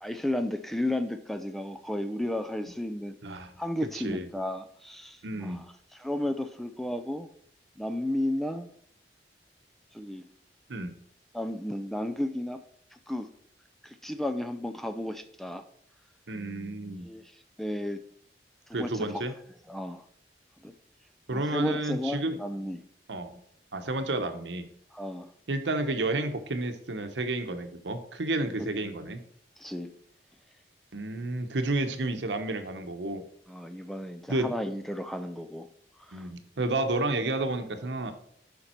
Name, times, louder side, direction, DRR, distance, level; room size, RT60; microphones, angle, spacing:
voice 1, 0.0-3.2 3.6-5.7 5.9-7.3 7.8-8.7 9.9-10.3 11.3-12.6 12.9-13.3 13.8-15.6 17.0-17.2 17.6-18.0 18.7-19.2 19.7-20.0 20.6-20.7 21.3-22.8 24.9-25.3 28.6-28.7 29.6-29.9 33.5-35.7 36.0-36.3, left 1 dB, ahead, 9 dB, 0.4 m, -33 dB
voice 2, 3.2-3.5 3.9-4.3 5.2-5.6 10.7-11.0 16.3-17.1 18.7-19.3 21.3-22.4 23.1-23.4 23.7-24.7 25.5-29.2 30.9-33.2 34.3-34.5 36.1-38.1, right 2 dB, 85° right, 7 dB, 0.9 m, -31 dB
7.0 x 5.2 x 4.4 m, 0.68 s
head